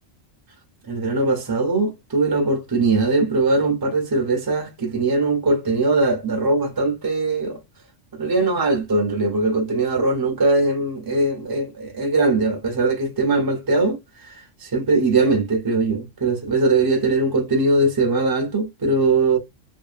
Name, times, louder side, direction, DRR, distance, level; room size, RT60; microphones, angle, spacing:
voice 1, 0.9-7.6 8.2-14.3 14.6-19.4, right 3 dB, 35° right, 0.3 m, -21 dB
2.7 x 2.4 x 2.4 m
omnidirectional pair, 1.3 m